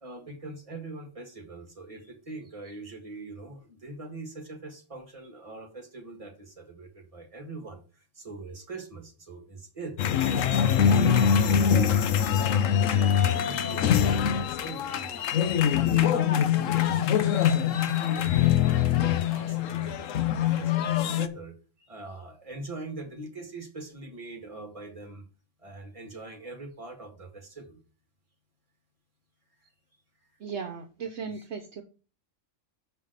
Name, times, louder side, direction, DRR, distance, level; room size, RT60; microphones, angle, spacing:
voice 1, 0.0-10.0 10.4-18.9 19.2-25.2 25.6-27.8 29.6-29.7 31.3-31.5, right 2 dB, 25° right, 3 dB, 1.9 m, -42 dB
sound 1, 10.0-21.3, left 9 dB, 80° left, 1.1 m, -23 dB
voice 2, 30.4-31.8, right 6 dB, 65° right, 4 dB, 1.1 m, -36 dB
6.0 x 5.4 x 6.4 m, 0.35 s
omnidirectional pair, 1.3 m